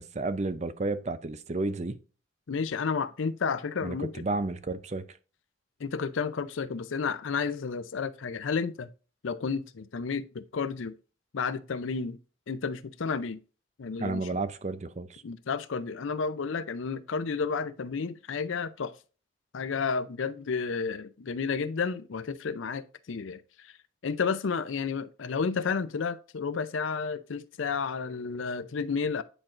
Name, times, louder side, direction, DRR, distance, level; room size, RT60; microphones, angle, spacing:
voice 1, 0.0-2.0 3.8-5.2 14.0-15.2, right 3 dB, 35° right, 0.5 m, -32 dB
voice 2, 2.5-4.1 5.8-8.9 9.2-10.9 11.3-12.2 12.5-13.4 13.8-14.3 15.2-18.9 19.5-23.7 24.0-29.2, left 5 dB, 80° left, 0.5 m, -31 dB
9.9 x 4.4 x 2.5 m
head